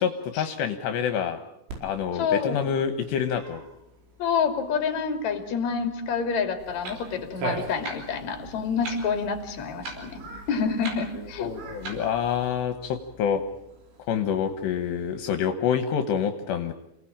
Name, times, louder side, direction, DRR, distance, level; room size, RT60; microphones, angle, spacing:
voice 1, 0.3-1.4 1.8-3.6 11.1-13.4 14.1-16.7, left 8 dB, 75° left, 7 dB, 3.2 m, -27 dB
Cat, 1.7-15.3, right 3 dB, 90° right, 7.3 m, -43 dB
voice 2, 2.1-2.6 4.2-10.2 10.5-11.5, left 6 dB, 45° left, 6 dB, 3.5 m, -28 dB
Clock, 6.6-12.5, right 3 dB, 65° right, 6.7 m, -42 dB
28.5 x 19.0 x 8.8 m, 0.84 s
omnidirectional pair, 5.2 m